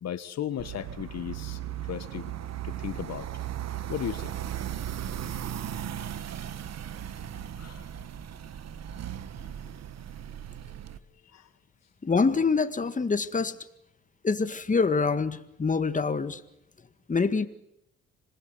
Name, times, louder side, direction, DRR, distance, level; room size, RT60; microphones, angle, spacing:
voice 1, 0.0-2.2 2.6-3.3 3.9-4.4 7.6-7.9 11.3-11.5, left 10 dB, 60° left, 1.4 m, -35 dB
sound 1, 0.6-11.0, right 10 dB, 60° right, 1.5 m, -37 dB
voice 2, 12.0-13.6 14.2-16.4 17.1-17.5, left 4 dB, 25° left, 1.9 m, -25 dB
26.5 x 20.0 x 8.0 m
cardioid pair, 90°, 30 cm